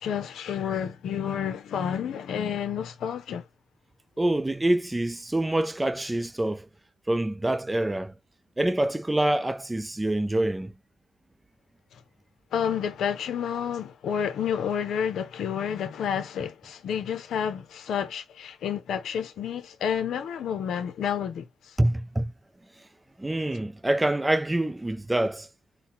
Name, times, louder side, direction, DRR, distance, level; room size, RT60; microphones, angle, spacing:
voice 1, 0.0-3.4 11.9-12.0 12.5-21.7, left 8 dB, 80° left, 0.7 m, -30 dB
voice 2, 4.2-6.7 7.1-8.1 8.6-10.7 21.8-22.3 23.2-25.5, right 1 dB, 15° right, 0.5 m, -26 dB
4.1 x 2.2 x 3.8 m
cardioid pair, 80°, 0 cm